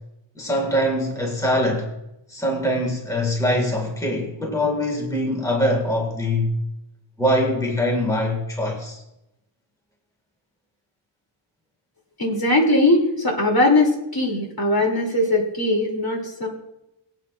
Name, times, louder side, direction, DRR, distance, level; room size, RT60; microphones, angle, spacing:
voice 1, 0.4-1.9 2.3-6.5 7.2-9.0, left 1 dB, 5° left, 1.9 m, -23 dB
voice 2, 12.2-16.5, left 2 dB, 50° left, 2.9 m, -20 dB
23.0 x 8.2 x 2.5 m
wide cardioid pair, 95°, 48 cm